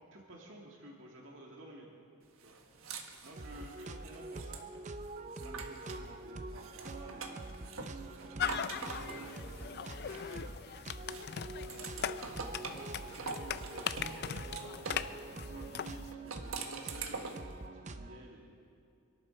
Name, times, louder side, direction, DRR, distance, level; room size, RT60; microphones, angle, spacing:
voice 1, 0.0-1.9 2.4-2.6 3.2-4.7 5.2-7.4 7.8-10.5 11.6-17.3 17.9-18.6, right 1 dB, 60° right, -2 dB, 2.4 m, -52 dB
sound 1, 2.4-6.1 6.5-10.7 11.1-15.1 16.1-17.5, right 4 dB, 80° right, 1.4 m, -45 dB
sound 2, 3.4-18.3, right 2 dB, 35° right, 0.7 m, -46 dB
sound 3, 8.4-16.1, left 8 dB, 50° left, 0.4 m, -40 dB
26.0 x 12.0 x 4.5 m, 2.6 s
head